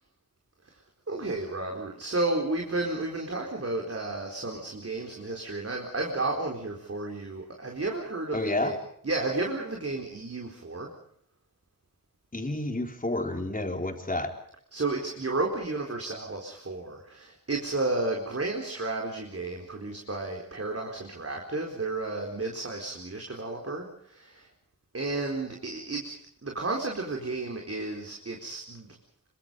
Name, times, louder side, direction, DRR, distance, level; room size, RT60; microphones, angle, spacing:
voice 1, 1.1-8.8 9.0-10.9 14.7-24.5 24.9-26.2 26.4-28.9, right 2 dB, 45° right, 1 dB, 4.4 m, -32 dB
voice 2, 8.3-8.8 12.3-14.3, left 2 dB, 25° left, 4 dB, 4.1 m, -30 dB
27.0 x 24.5 x 5.3 m, 0.65 s
wide cardioid pair, 105°, 33 cm